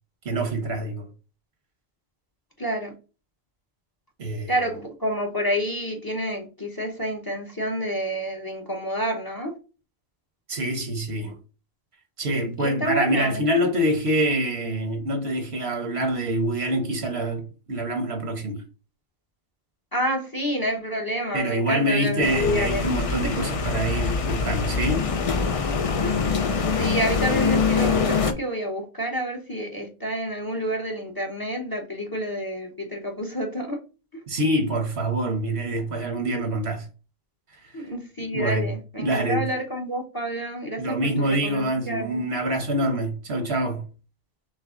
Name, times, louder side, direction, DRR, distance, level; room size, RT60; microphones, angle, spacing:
voice 1, 0.2-1.1 4.2-4.5 10.5-11.4 12.2-18.6 21.3-25.0 34.3-36.9 37.8-37.9 38.3-39.5 40.8-43.9, right 1 dB, 80° right, 1.4 m, -26 dB
voice 2, 2.6-2.9 4.5-9.5 12.6-13.4 19.9-23.0 26.0-26.2 26.8-33.8 37.7-41.0 41.3-42.2, equal, 25° left, 0.8 m, -28 dB
sound 1, 22.2-28.3, left 5 dB, 45° left, 0.5 m, -24 dB
6.2 x 2.1 x 3.7 m
omnidirectional pair, 1.0 m